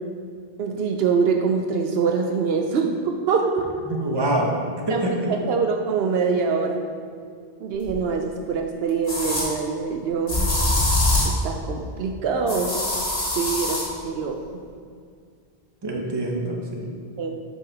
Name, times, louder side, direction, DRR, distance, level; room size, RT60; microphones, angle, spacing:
voice 1, 0.6-3.7 4.9-5.2 5.5-6.8 7.6-10.5 11.2-12.8 13.4-14.4 17.2-17.4, right 5 dB, 75° right, 3 dB, 0.8 m, -24 dB
voice 2, 3.9-4.6 4.9-5.1 15.8-16.9, right 1 dB, 25° right, -1 dB, 0.9 m, -25 dB
sound 1, 7.9-8.0 9.1-9.5 10.3-11.4 12.5-13.9, left 2 dB, 80° left, 2.0 m, -23 dB
5.7 x 5.2 x 4.8 m, 2.1 s
omnidirectional pair, 1.1 m